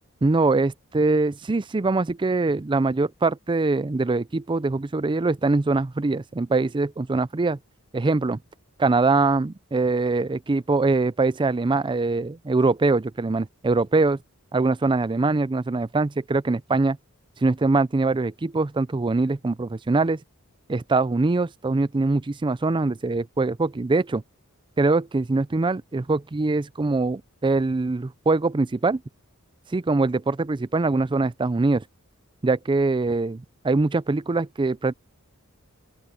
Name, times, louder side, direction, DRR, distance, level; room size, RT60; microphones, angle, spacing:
voice 1, 0.2-7.6 7.9-8.4 8.8-14.2 14.5-17.0 17.4-20.2 20.7-24.2 24.8-29.0 29.7-31.8 32.4-34.9, right 3 dB, 20° right, 0.4 m, -23 dB
open air
head